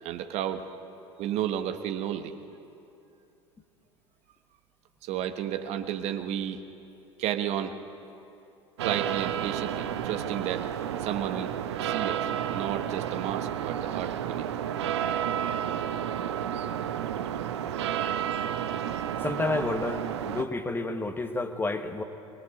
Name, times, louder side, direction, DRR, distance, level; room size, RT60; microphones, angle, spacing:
voice 1, 0.0-0.7 1.2-2.4 5.0-6.6 7.2-7.8 8.8-10.7 11.0-14.5, right 10 dB, 45° right, 8 dB, 1.3 m, -32 dB
sound 1, 8.8-20.4, right 10 dB, 65° right, 1.0 m, -31 dB
voice 2, 19.2-22.0, left 3 dB, 15° left, 8 dB, 1.5 m, -30 dB
22.5 x 21.5 x 8.3 m, 2.8 s
figure-of-eight pair, 70°, 15 cm